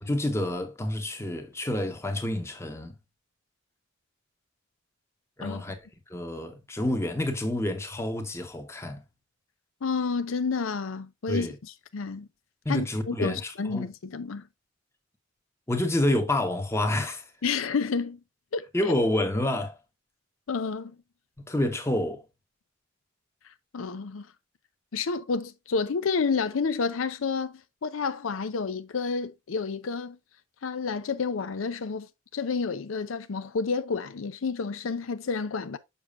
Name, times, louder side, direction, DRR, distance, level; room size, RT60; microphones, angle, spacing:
voice 1, 0.0-3.0 5.4-9.0 11.3-11.6 12.6-13.9 15.7-17.3 18.7-19.8 21.5-22.2, left 1 dB, 15° left, 1.0 m, -28 dB
voice 2, 9.8-11.5 11.9-12.3 12.7-14.5 17.4-18.2 18.5-18.7 20.5-20.9 23.7-24.3 24.9-30.2 30.6-35.8, left 5 dB, 85° left, 0.5 m, -30 dB
6.9 x 6.1 x 2.4 m
head